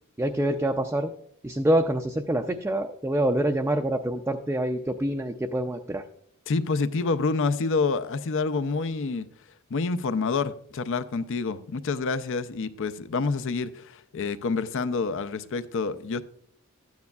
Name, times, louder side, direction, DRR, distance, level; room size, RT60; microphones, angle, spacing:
voice 1, 0.2-1.1 1.4-6.0, right 1 dB, 10° right, 3 dB, 0.4 m, -26 dB
voice 2, 6.5-9.3 9.7-16.2, left 4 dB, 60° left, 12 dB, 0.5 m, -27 dB
12.5 x 9.4 x 2.3 m, 0.67 s
head